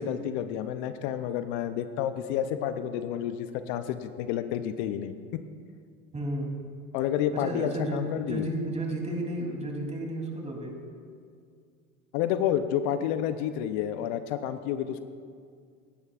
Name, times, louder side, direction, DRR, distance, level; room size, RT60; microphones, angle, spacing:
voice 1, 0.0-5.4 6.9-8.5 12.1-15.0, left 10 dB, 65° left, 10 dB, 0.7 m, -30 dB
voice 2, 6.1-6.5 7.3-10.8, right 1 dB, 15° right, -1 dB, 3.2 m, -33 dB
17.5 x 10.5 x 2.5 m, 2.2 s
hypercardioid pair, 75°, 38 cm